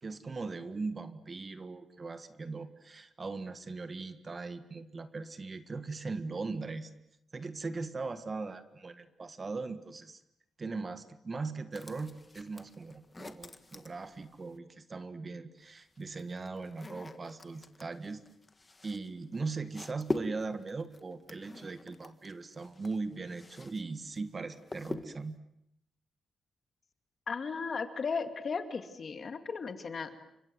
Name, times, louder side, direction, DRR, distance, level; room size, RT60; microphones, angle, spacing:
voice 1, 0.0-6.9 7.3-10.2 10.6-18.2 18.8-25.4, right 3 dB, 30° right, 11 dB, 1.6 m, -39 dB
sound 1, 11.7-14.6 15.6-23.8 24.1-25.4, left 2 dB, 20° left, 1.7 m, -44 dB
voice 2, 27.3-30.1, left 5 dB, 40° left, 8 dB, 2.4 m, -35 dB
29.5 x 25.5 x 7.9 m, 0.79 s
wide cardioid pair, 135°, 0 cm